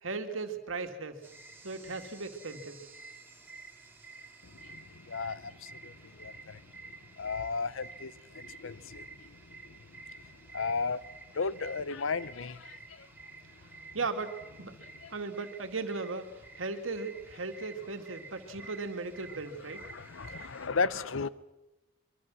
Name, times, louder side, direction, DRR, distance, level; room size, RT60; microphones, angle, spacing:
voice 1, 0.0-1.2 1.6-2.8 13.9-14.3 14.6-14.8 15.1-16.3 16.6-19.8, right 3 dB, 90° right, 2.1 m, -37 dB
sound 1, 1.2-20.7, right 3 dB, 10° right, 3.1 m, -51 dB
voice 2, 5.1-5.9 6.2-6.3 7.2-9.0 10.5-11.0 11.3-12.7 19.9-21.3, left 4 dB, 85° left, 0.8 m, -34 dB
25.0 x 23.0 x 6.2 m
head